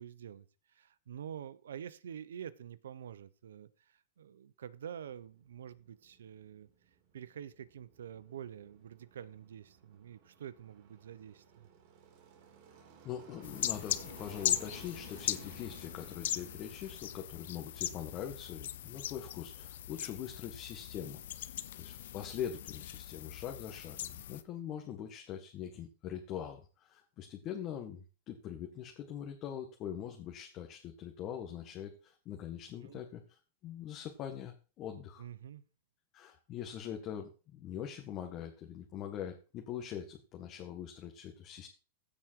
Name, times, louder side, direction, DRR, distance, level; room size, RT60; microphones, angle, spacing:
voice 1, 0.0-6.7 7.1-11.7 32.8-33.0 35.2-35.6, right 9 dB, 90° right, 15 dB, 0.9 m, -47 dB
sound 1, 5.2-24.5, right 7 dB, 55° right, 4.0 m, -60 dB
voice 2, 13.0-21.2 21.7-35.2 36.1-41.7, left 9 dB, 40° left, 3 dB, 1.8 m, -43 dB
sound 2, 13.4-24.4, left 12 dB, 75° left, 0.9 m, -39 dB
15.5 x 5.2 x 4.7 m, 0.34 s
hypercardioid pair, 130°, 0 cm